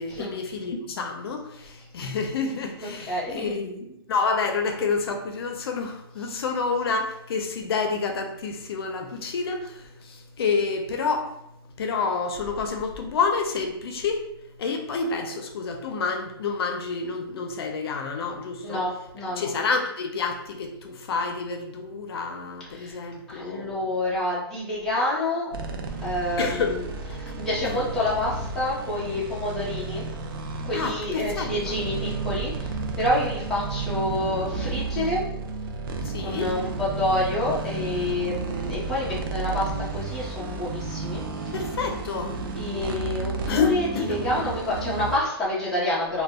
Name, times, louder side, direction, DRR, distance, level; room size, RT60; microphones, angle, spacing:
voice 1, 0.0-14.3 14.6-18.8 19.4-23.9 26.4-26.8 27.1-27.3 27.6-27.8 30.7-31.5 36.0-36.6 41.5-42.4 43.5-44.2, left 4 dB, 70° left, 4 dB, 0.5 m, -29 dB
voice 2, 3.1-3.5 18.6-19.5 22.7-23.0 23.3-25.5 26.0-26.9 27.2-30.0 30.6-32.7 33.0-35.3 36.2-41.5 42.6-46.2, left 1 dB, 5° left, -9 dB, 0.5 m, -28 dB
sound 1, 25.5-45.2, right 3 dB, 60° right, 0.4 m, -32 dB
2.1 x 2.0 x 3.4 m, 0.81 s
hypercardioid pair, 170°, 13 cm